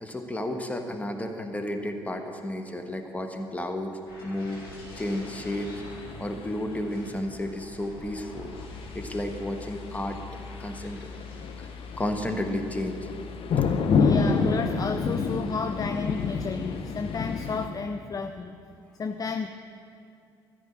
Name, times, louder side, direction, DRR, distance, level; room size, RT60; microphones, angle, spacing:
voice 1, 0.0-3.9 4.2-4.6 4.9-5.8 6.2-8.5 8.9-10.2 10.6-11.0 11.6-11.7 12.0-13.1, left 1 dB, 10° left, 5 dB, 1.5 m, -32 dB
sound 1, 4.1-12.5 12.9-13.2, left 1 dB, 85° left, 2.0 m, -47 dB
sound 2, 4.9-6.8 8.1-17.7, left 5 dB, 50° left, 1.0 m, -30 dB
voice 2, 14.0-18.6 19.0-19.5, left 5 dB, 30° left, 8 dB, 0.5 m, -32 dB
14.0 x 5.3 x 9.3 m, 2.5 s
figure-of-eight pair, 50°, 12 cm